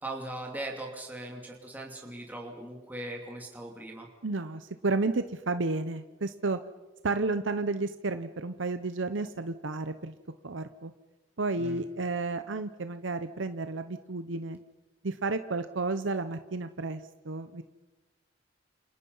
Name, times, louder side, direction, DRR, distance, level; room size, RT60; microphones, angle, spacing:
voice 1, 0.0-4.1 11.6-11.8, right 1 dB, 10° right, -1 dB, 2.9 m, -39 dB
voice 2, 4.2-6.6 7.0-10.1 10.4-10.9 11.4-14.6 15.0-17.0 17.2-17.6, right 3 dB, 75° right, 10 dB, 0.9 m, -31 dB
29.0 x 27.5 x 5.6 m, 1.2 s
head